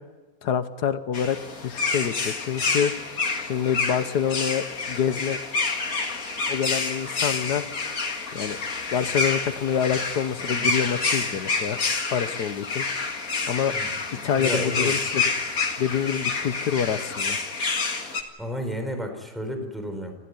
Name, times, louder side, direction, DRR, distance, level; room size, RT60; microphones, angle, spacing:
voice 1, 0.4-1.4 1.6-2.9 3.4-5.4 6.5-7.6 8.3-8.6 8.9-11.8 12.1-12.8 13.5-13.7 14.1-15.2 15.8-17.4, left 8 dB, 75° left, 12 dB, 1.7 m, -26 dB
sound 1, 1.1-18.2, left 4 dB, 60° left, 2.4 m, -28 dB
voice 2, 10.4-10.7 13.7-13.9 14.3-15.0 18.4-20.1, equal, ahead, 5 dB, 4.1 m, -32 dB
27.5 x 15.0 x 9.7 m, 1.3 s
omnidirectional pair, 1.7 m